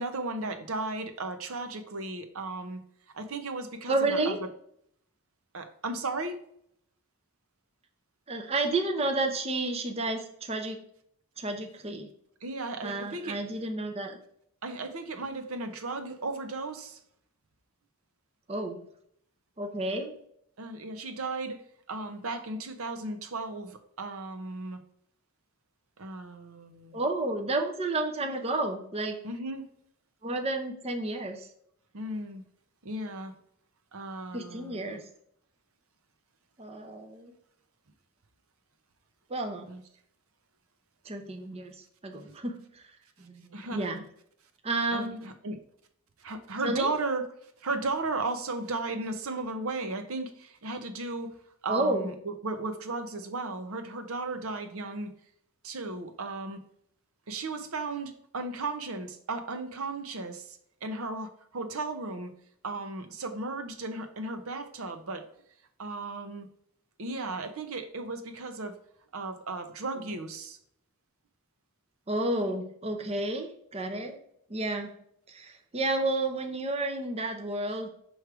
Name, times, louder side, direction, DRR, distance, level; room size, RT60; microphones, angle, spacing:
voice 1, 0.0-2.8 3.1-4.5 5.5-6.4 12.4-13.4 14.6-17.0 20.6-21.6 21.9-24.8 26.0-27.0 29.2-29.7 31.9-32.4 32.8-33.3 33.9-35.0 39.7-39.8 42.3-42.4 43.5-43.9 44.9-45.6 46.2-51.4 51.6-55.1 55.6-56.6 57.3-62.3 62.6-65.2 65.8-66.5 67.0-68.8 69.1-70.6, right 3 dB, 70° right, 7 dB, 0.9 m, -35 dB
voice 2, 3.9-4.4 8.3-10.8 11.4-12.1 12.8-14.2 18.5-18.9 19.6-20.2 26.9-29.2 30.2-31.5 34.3-35.1 36.6-37.3 39.3-39.7 41.0-42.8 43.2-44.0 44.6-45.3 46.6-46.9 51.7-52.1 72.1-74.2 74.5-75.0 75.3-77.9, right 2 dB, 25° right, 4 dB, 0.7 m, -31 dB
6.4 x 3.2 x 4.6 m, 0.69 s
head